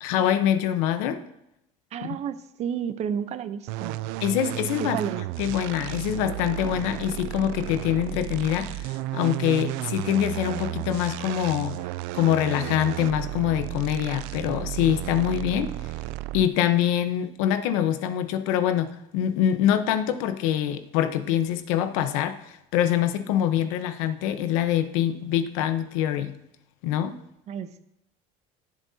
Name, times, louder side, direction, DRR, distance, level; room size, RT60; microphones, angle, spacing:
voice 1, 0.0-1.2 2.0-2.2 4.2-5.0 5.4-11.8 12.1-15.7 16.3-26.4 26.8-27.2, left 10 dB, 80° left, 10 dB, 1.0 m, -25 dB
voice 2, 1.9-4.0 4.8-5.2 27.5-27.8, right 8 dB, 40° right, 11 dB, 0.9 m, -31 dB
sound 1, 3.7-16.6, right 16 dB, 75° right, 0.4 m, -33 dB
18.0 x 7.7 x 2.8 m, 0.83 s
supercardioid pair, 120°, 17 cm